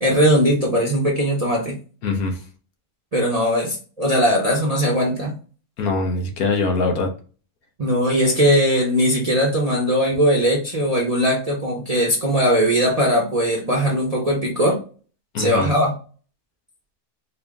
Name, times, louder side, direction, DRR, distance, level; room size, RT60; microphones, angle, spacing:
voice 1, 0.0-1.8 3.1-5.4 7.8-14.8 15.4-15.9, equal, 35° right, -1 dB, 0.6 m, -19 dB
voice 2, 2.0-2.4 5.8-7.1 15.3-15.7, left 3 dB, 70° left, 3 dB, 1.3 m, -22 dB
4.3 x 2.1 x 3.4 m, 0.38 s
omnidirectional pair, 1.6 m